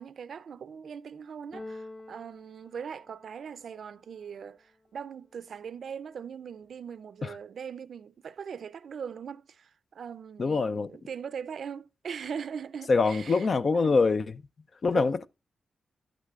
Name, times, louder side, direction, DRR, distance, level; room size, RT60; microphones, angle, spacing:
voice 1, 0.0-13.5 13.7-14.0 14.9-15.3, right 7 dB, 70° right, 0.5 m, -40 dB
Keyboard (musical), 1.5-3.6, left 2 dB, 25° left, 0.9 m, -46 dB
voice 2, 10.4-10.9 12.9-14.4 14.8-15.3, left 4 dB, 55° left, 0.5 m, -24 dB
11.0 x 9.5 x 2.4 m
cardioid pair, 60°, 0 cm